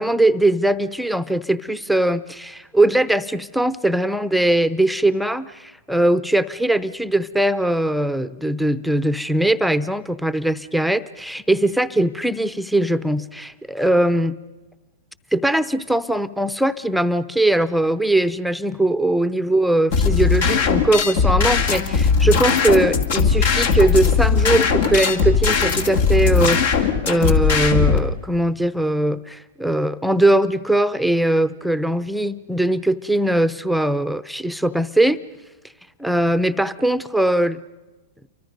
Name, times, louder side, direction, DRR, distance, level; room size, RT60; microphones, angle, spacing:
voice 1, 0.0-14.3 15.3-35.2 36.0-37.6, right 1 dB, ahead, 13 dB, 0.7 m, -20 dB
sound 1, 19.9-28.0, left 5 dB, 65° left, 2.4 m, -18 dB
29.0 x 24.0 x 5.3 m, 1.1 s
hypercardioid pair, 120°, 0 cm